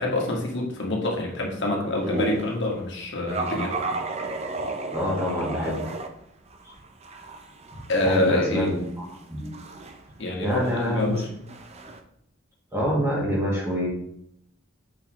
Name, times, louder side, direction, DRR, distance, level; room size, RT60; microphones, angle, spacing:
voice 1, 0.0-3.8 7.9-8.7 10.2-11.3, left 2 dB, 55° left, -1 dB, 1.6 m, -26 dB
sound 1, 2.0-2.6 3.3-6.1 6.5-12.0, right 3 dB, 30° right, 0.5 m, -34 dB
voice 2, 4.9-5.9 8.0-9.5 10.4-11.1 12.7-13.9, equal, 15° right, -4 dB, 1.6 m, -26 dB
6.4 x 5.6 x 3.0 m, 0.73 s
head